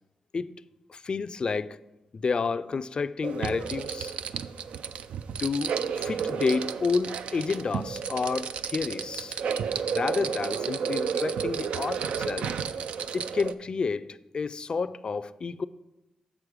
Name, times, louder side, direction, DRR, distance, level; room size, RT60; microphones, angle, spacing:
voice 1, 0.9-1.8 2.1-4.1 5.4-9.4 9.9-12.5 13.1-15.7, left 4 dB, 50° left, 0.3 m, -30 dB
sound 1, 3.2-13.5, right 7 dB, 85° right, 0.3 m, -32 dB
7.3 x 6.2 x 4.9 m
cardioid pair, 60°, 2 cm